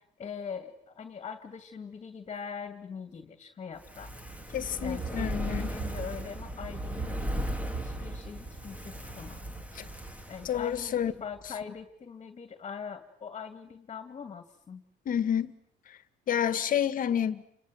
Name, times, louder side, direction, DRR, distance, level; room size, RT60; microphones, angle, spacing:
voice 1, 0.0-4.1 4.8-9.4 10.3-14.8, left 6 dB, 35° left, 2.4 m, -42 dB
Fire, 3.7-11.1 11.4-11.5, right 1 dB, 10° right, 2.2 m, -36 dB
voice 2, 4.5-5.7 9.8-9.9 10.4-11.1 15.0-15.5 16.3-17.4, left 9 dB, 55° left, 1.8 m, -29 dB
29.0 x 25.5 x 7.8 m
cardioid pair, 110°, 17 cm